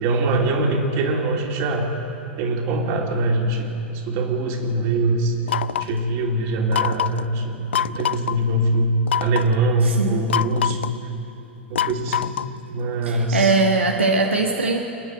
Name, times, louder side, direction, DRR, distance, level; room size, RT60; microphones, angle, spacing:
voice 1, 0.0-1.9 2.4-5.3 5.7-10.9 11.7-12.4 12.7-13.6, right 2 dB, 45° right, 1 dB, 3.0 m, -23 dB
sound 1, 5.5-6.0 6.7-7.2 7.7-8.3 9.1-9.5 10.3-11.0 11.8-12.6, left 9 dB, 65° left, 0.4 m, -24 dB
voice 2, 9.8-10.2 13.0-14.8, right 3 dB, 80° right, 2 dB, 1.3 m, -20 dB
28.5 x 10.0 x 9.1 m, 2.8 s
figure-of-eight pair, 95°, 6 cm